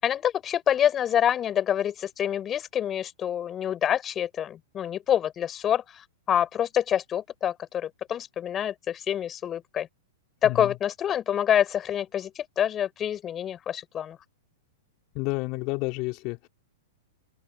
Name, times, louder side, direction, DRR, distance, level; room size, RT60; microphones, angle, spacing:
voice 1, 0.0-5.8 6.3-9.9 10.4-14.2, left 10 dB, 25° left, 7.1 m, -26 dB
voice 2, 10.4-10.7 15.1-16.5, left 26 dB, 45° left, 3.4 m, -30 dB
open air
hypercardioid pair, 120°, 0 cm